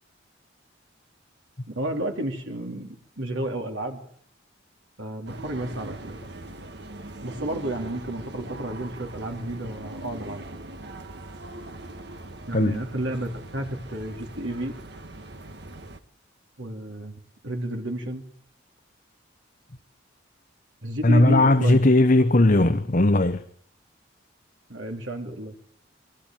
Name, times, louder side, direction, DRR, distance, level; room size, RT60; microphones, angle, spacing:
voice 1, 1.7-4.0 5.0-6.2 7.2-10.5 12.5-14.8 16.6-18.2 20.8-21.8 24.7-25.5, right 1 dB, 85° right, 3.5 m, -31 dB
sound 1, 5.3-16.0, right 2 dB, 60° right, 1.6 m, -41 dB
voice 2, 21.0-23.4, left 2 dB, 40° left, 1.0 m, -18 dB
22.5 x 17.0 x 9.2 m
head